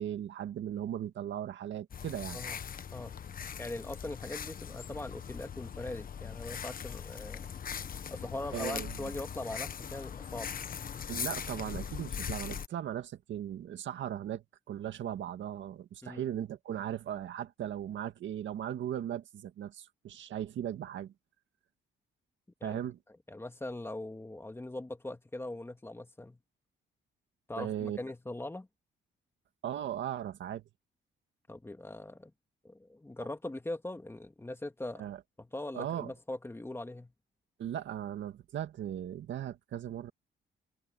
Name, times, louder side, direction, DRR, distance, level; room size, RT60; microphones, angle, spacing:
voice 1, 0.0-2.4 8.5-9.1 11.1-21.1 22.6-23.0 27.6-28.0 29.6-30.6 35.0-35.2 35.7-36.1 37.6-40.1, right 10 dB, 70° right, 1.9 m, -38 dB
sound 1, 1.9-12.7, left 7 dB, 45° left, 1.3 m, -40 dB
voice 2, 3.6-7.5 8.1-10.5 16.0-16.3 22.6-22.8 23.3-26.4 27.5-28.7 31.5-32.3 32.6-35.0 35.4-37.1, left 2 dB, 10° left, 2.2 m, -41 dB
cardioid pair, 90°, 20 cm